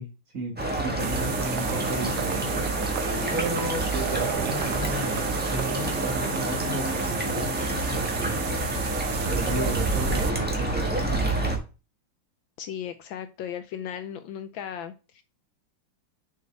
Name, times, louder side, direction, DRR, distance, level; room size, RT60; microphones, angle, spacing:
voice 1, 0.0-2.7 3.3-7.5 7.9-8.5 9.2-11.6, right 2 dB, 40° right, 1 dB, 1.9 m, -34 dB
sound 1, 0.6-11.6, right 1 dB, 5° right, 1.0 m, -28 dB
Livestock farm animals working animals, 0.6-6.4, right 9 dB, 70° right, 1.0 m, -35 dB
sound 2, 1.0-10.3, right 12 dB, 85° right, 1.5 m, -36 dB
voice 2, 12.6-15.2, left 9 dB, 75° left, 10 dB, 1.3 m, -36 dB
7.0 x 4.7 x 3.4 m, 0.31 s
omnidirectional pair, 2.3 m